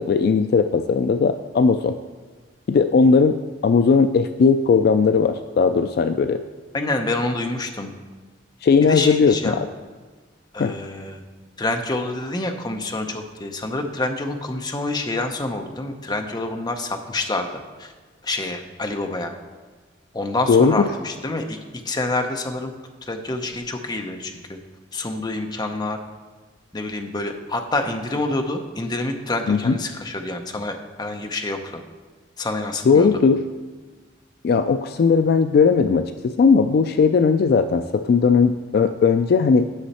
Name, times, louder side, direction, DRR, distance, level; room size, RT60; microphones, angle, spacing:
voice 1, 0.0-2.0 2.7-6.4 8.6-9.7 10.6-10.7 20.5-20.9 29.5-29.8 32.8-33.4 34.4-39.7, left 5 dB, 55° left, 9 dB, 0.3 m, -18 dB
voice 2, 6.7-7.9 8.9-9.6 10.5-11.2 11.6-17.5 17.8-17.9 18.2-19.3 20.1-21.6 21.8-22.7 23.1-24.6 24.9-26.0 26.7-31.8 32.4-33.1, left 2 dB, 20° left, 4 dB, 0.7 m, -27 dB
9.9 x 6.2 x 4.2 m, 1.4 s
head